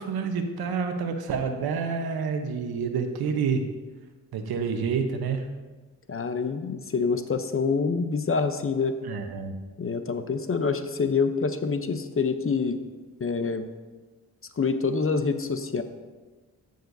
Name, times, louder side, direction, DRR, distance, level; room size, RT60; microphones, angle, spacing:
voice 1, 0.0-3.6 4.3-5.5 9.0-9.6, right 5 dB, 70° right, 6 dB, 1.0 m, -28 dB
voice 2, 6.1-9.0 9.8-12.8 13.2-13.7 14.6-15.8, left 5 dB, 35° left, 9 dB, 0.8 m, -26 dB
14.0 x 6.7 x 2.7 m, 1.3 s
supercardioid pair, 50°, 38 cm